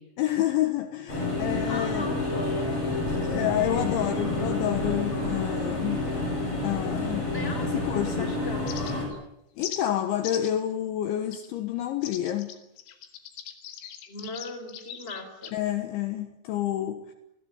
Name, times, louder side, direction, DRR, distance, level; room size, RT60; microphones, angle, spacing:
voice 1, 0.2-2.1 3.0-6.0 6.6-7.2 7.7-8.3 9.6-12.5 15.5-17.1, left 12 dB, 70° left, 8 dB, 3.4 m, -29 dB
sound 1, 1.1-9.1, left 2 dB, 25° left, 8.4 m, -29 dB
voice 2, 1.7-2.7 7.3-8.7 14.1-15.5, left 2 dB, 10° left, 7 dB, 5.0 m, -38 dB
sound 2, 8.7-9.2 9.6-9.8 10.2-10.6 11.3-11.5 12.0-15.6, left 10 dB, 90° left, 5.2 m, -40 dB
29.0 x 21.0 x 8.9 m, 0.84 s
omnidirectional pair, 6.0 m